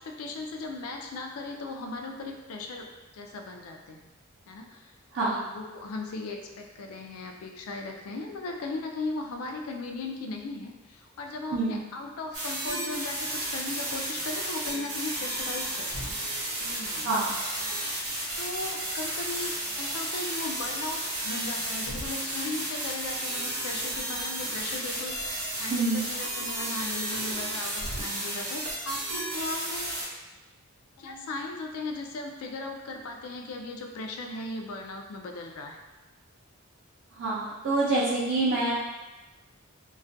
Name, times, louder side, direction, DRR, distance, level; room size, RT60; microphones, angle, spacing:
voice 1, 0.0-4.1 4.5-4.9 5.2-16.1 16.6-17.3 17.7-30.0 31.0-35.8, left 3 dB, 75° left, 3 dB, 0.3 m, -37 dB
voice 2, 5.1-5.5 11.5-11.8 17.0-17.3 25.7-26.0 37.2-38.7, right 2 dB, 50° right, -8 dB, 0.4 m, -26 dB
sound 1, 12.3-30.0, right 1 dB, 85° right, 0.7 m, -33 dB
2.3 x 2.1 x 2.5 m, 1.1 s
head